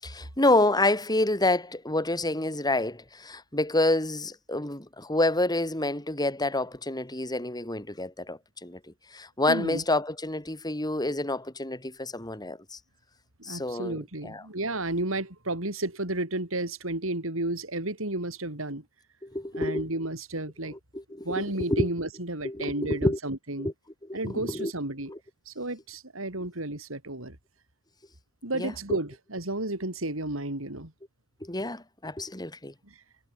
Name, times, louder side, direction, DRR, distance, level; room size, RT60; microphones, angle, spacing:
voice 1, 0.0-8.8 9.1-12.8 13.4-14.4 19.2-19.9 20.9-21.9 22.4-23.2 23.6-23.7 24.1-24.7 25.1-25.2 28.5-29.0 31.4-32.7, left 2 dB, 20° left, 5.3 m, -28 dB
voice 2, 9.5-9.8 13.5-18.8 19.6-20.8 21.2-23.7 24.1-25.1 25.5-27.4 28.4-30.9 32.8-32.9, right 2 dB, 80° right, 4.3 m, -32 dB
head